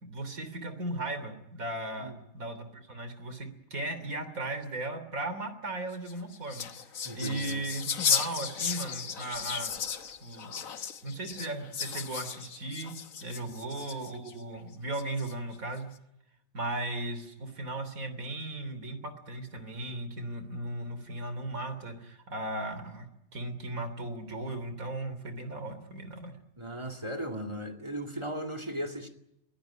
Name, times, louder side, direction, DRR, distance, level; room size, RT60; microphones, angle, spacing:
voice 1, 0.0-6.7 7.1-9.8 10.2-10.5 11.0-12.9 13.2-15.9 16.5-26.3, right 2 dB, 85° right, 3.6 m, -37 dB
sound 1, 5.9-14.3 14.9-15.5, left 7 dB, 75° left, 1.6 m, -35 dB
voice 2, 7.0-7.6 13.4-13.7 26.6-29.1, right 1 dB, 20° right, 2.2 m, -37 dB
23.0 x 16.5 x 10.0 m
omnidirectional pair, 1.4 m